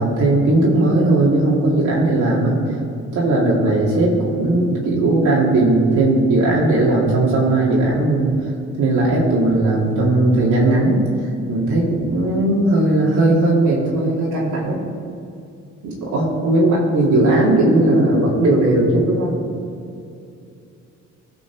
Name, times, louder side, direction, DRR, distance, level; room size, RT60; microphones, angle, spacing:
voice 1, 0.0-2.6 3.1-8.3 8.8-11.0 11.5-14.9 15.8-19.3, right 2 dB, 75° right, -5 dB, 2.4 m, -17 dB
15.5 x 5.3 x 4.6 m, 2.5 s
cardioid pair, 90°, 30 cm